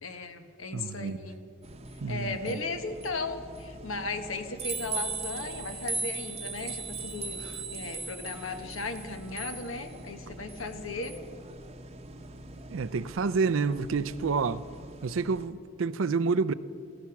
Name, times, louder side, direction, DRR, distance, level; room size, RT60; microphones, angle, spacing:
voice 1, 0.0-1.4 2.1-11.1, left 3 dB, 80° left, 1.3 m, -36 dB
voice 2, 0.7-1.2 2.0-2.6 7.4-7.5 12.7-14.6 15.0-16.5, right 4 dB, 75° right, 0.5 m, -29 dB
sound 1, 1.6-15.5, right 3 dB, 30° right, 0.8 m, -40 dB
15.5 x 15.0 x 5.9 m
head